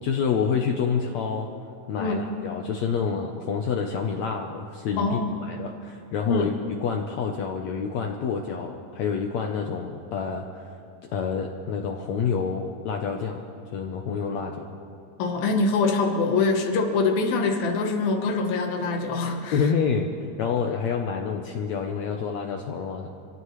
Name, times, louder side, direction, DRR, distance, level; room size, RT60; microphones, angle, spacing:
voice 1, 0.0-1.5 1.9-6.5 6.8-10.7 11.1-13.4 13.7-14.7 19.5-20.1 20.4-23.1, left 6 dB, 70° left, 2 dB, 1.8 m, -28 dB
voice 2, 2.0-2.3 5.0-5.5 6.3-6.5 15.2-19.6, left 3 dB, 90° left, 3 dB, 3.1 m, -24 dB
26.5 x 16.5 x 3.2 m, 2.7 s
omnidirectional pair, 4.0 m